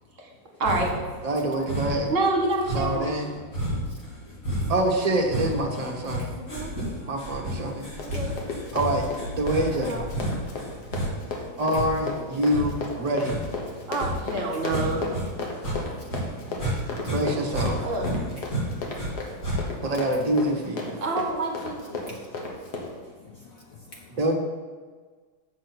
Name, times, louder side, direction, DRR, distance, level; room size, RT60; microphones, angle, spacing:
sound 1, 0.6-1.1 1.7-2.1 2.6-15.2 15.5-16.8 17.0-19.1 19.4-19.9, right 1 dB, 40° left, 2.8 m, -31 dB
voice 1, 1.2-2.1 2.7-3.3 4.7-6.3 7.1-7.9 8.7-10.0 11.6-13.3 17.0-17.8 19.8-20.9 24.1-24.3, right 1 dB, 25° right, 0 dB, 0.9 m, -26 dB
voice 2, 2.1-3.3 6.3-6.7 8.0-8.3 9.9-10.1 13.9-15.0 17.8-18.0 21.0-22.0, right 2 dB, 40° right, 0 dB, 1.7 m, -27 dB
voice 3, 3.6-4.6 6.1-7.2 7.8-8.3 10.3-11.6 12.6-12.7 13.7-13.9 15.5-17.0 18.5-19.8 22.0-24.2, left 4 dB, 80° left, 2 dB, 0.7 m, -49 dB
Run, 7.6-22.9, left 3 dB, 55° left, 1.7 m, -35 dB
7.4 x 6.2 x 6.0 m, 1.4 s
omnidirectional pair, 2.2 m